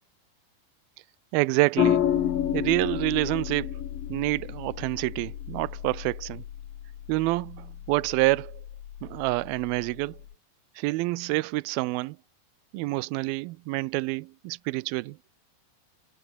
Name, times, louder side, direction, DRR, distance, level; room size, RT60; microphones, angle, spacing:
voice 1, 1.3-2.1 2.5-3.8 4.1-6.4 7.1-8.6 9.0-10.2 10.8-12.2 12.7-15.2, right 21 dB, 80° right, 2.2 m, -27 dB
sound 1, 1.8-10.3, left 10 dB, 60° left, 3.4 m, -31 dB
omnidirectional pair, 4.9 m